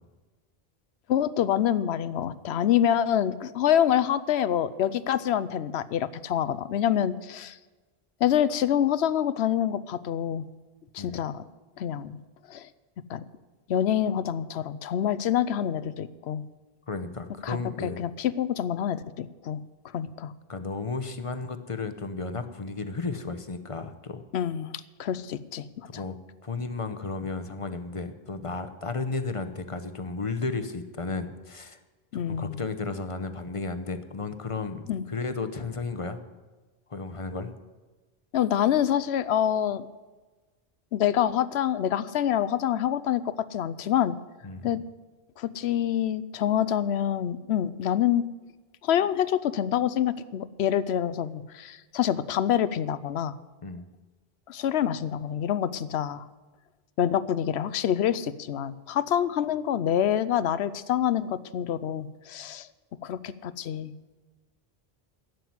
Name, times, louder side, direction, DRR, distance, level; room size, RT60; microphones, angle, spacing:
voice 1, 1.1-7.6 8.2-10.5 10.9-11.4 11.8-12.2 12.5-12.7 13.1-13.2 13.7-16.4 17.4-19.6 19.9-20.3 24.3-26.0 32.1-32.6 34.9-35.0 38.3-39.9 40.9-44.2 44.6-44.8 45.4-48.2 48.8-53.4 54.5-56.3 57.0-62.7 63.0-63.9, left 10 dB, 85° left, 16 dB, 0.9 m, -26 dB
voice 2, 16.9-18.0 20.5-24.2 25.8-26.2 26.4-31.8 32.1-36.2 36.9-37.5 44.4-44.8 53.6-53.9, left 3 dB, 35° left, 9 dB, 0.8 m, -33 dB
11.5 x 7.8 x 9.4 m, 1.3 s
omnidirectional pair, 1.1 m